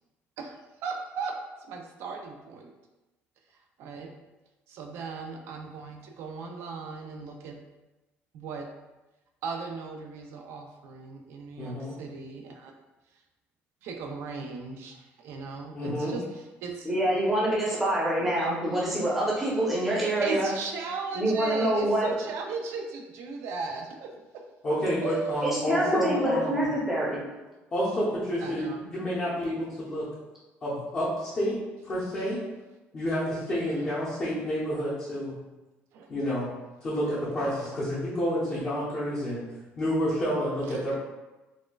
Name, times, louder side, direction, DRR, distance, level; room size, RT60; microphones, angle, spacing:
voice 1, 0.8-1.4 1.7-2.7 3.8-4.1 4.7-7.6 8.3-8.6 9.4-12.7 13.8-16.9 17.1-17.2 20.2-24.1 25.0-25.6 25.9-26.0 28.4-28.8 33.5-33.9 35.9-36.1 37.6-37.7, right 4 dB, 70° right, 3 dB, 0.4 m, -37 dB
voice 2, 11.6-12.0 15.7-16.2 24.6-26.7 27.7-30.1 30.6-31.6 31.8-32.4 32.9-35.3 36.1-36.5 36.8-39.4 39.8-41.0, equal, 30° left, -10 dB, 0.8 m, -29 dB
voice 3, 16.8-20.5 21.1-22.1 25.4-27.2, right 1 dB, 5° right, -6 dB, 0.8 m, -26 dB
4.1 x 2.2 x 2.3 m, 1.1 s
cardioid pair, 155°, 5 cm